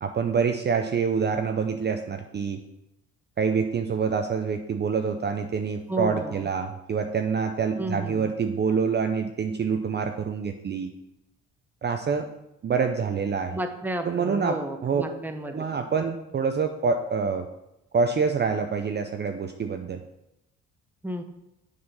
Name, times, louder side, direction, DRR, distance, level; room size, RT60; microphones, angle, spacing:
voice 1, 0.0-2.6 3.4-10.9 11.8-12.3 12.6-13.6 14.0-15.0 15.4-17.5 17.9-20.0, right 5 dB, 35° right, 6 dB, 0.5 m, -26 dB
voice 2, 5.9-6.4 7.8-8.3 13.5-15.6 21.0-21.2, equal, 5° right, 6 dB, 0.8 m, -32 dB
7.8 x 4.1 x 5.5 m, 0.88 s
cardioid pair, 90°, 30 cm